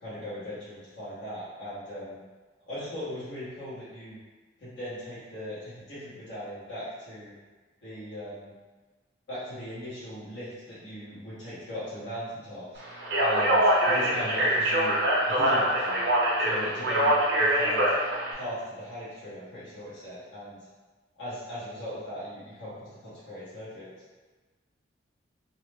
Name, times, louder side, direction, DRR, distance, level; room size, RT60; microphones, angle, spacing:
voice 1, 0.0-2.2 2.7-4.2 4.6-7.3 7.8-8.5 9.3-12.8 13.2-15.0 15.3-16.0 16.4-17.9 18.3-20.6 21.2-23.9, equal, 80° left, -12 dB, 1.2 m, -38 dB
Speech, 13.0-18.3, right 1 dB, 60° right, 0.5 m, -24 dB
2.8 x 2.0 x 3.3 m, 1.3 s
head